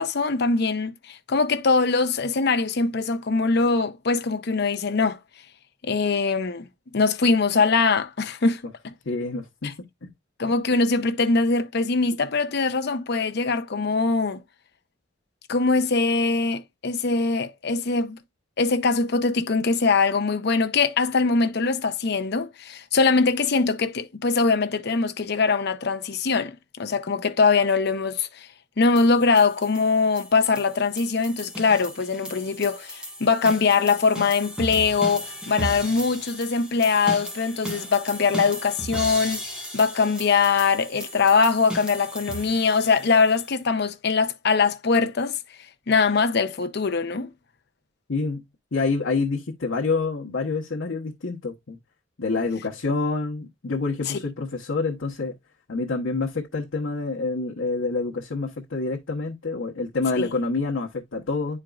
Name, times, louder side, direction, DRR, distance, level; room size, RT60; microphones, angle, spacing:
voice 1, 0.0-5.2 5.8-6.7 6.9-8.6 9.6-9.7 10.4-14.4 15.5-18.2 18.6-28.5 28.8-45.4 45.9-47.3 54.1-54.2 60.2-60.3, left 4 dB, 55° left, 0.7 m, -22 dB
voice 2, 9.0-10.1 48.1-48.4 48.7-51.8 52.2-55.3 55.7-61.6, left 3 dB, 80° left, 1.0 m, -27 dB
sound 1, 29.0-43.5, equal, 5° right, 1.4 m, -36 dB
10.0 x 4.5 x 2.3 m
head